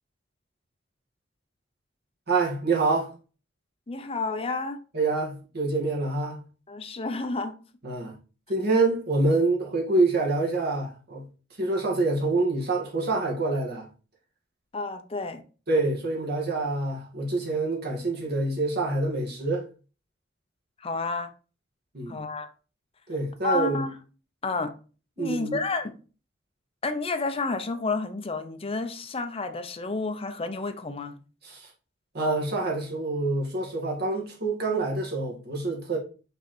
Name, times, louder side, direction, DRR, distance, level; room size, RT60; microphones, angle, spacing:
voice 1, 2.3-3.1 4.9-6.4 7.8-8.1 8.5-11.2 11.6-13.9 15.7-19.6 21.9-22.2 23.1-23.8 25.2-25.6 31.4-31.7 32.1-36.0, right 3 dB, 55° right, 2.2 m, -26 dB
voice 2, 3.9-4.8 6.7-7.6 14.7-15.4 20.8-21.3 22.1-22.5 23.4-24.0 24.4-24.7 25.2-26.0 26.8-31.2, left 3 dB, 30° left, 0.7 m, -30 dB
5.8 x 3.8 x 4.4 m
head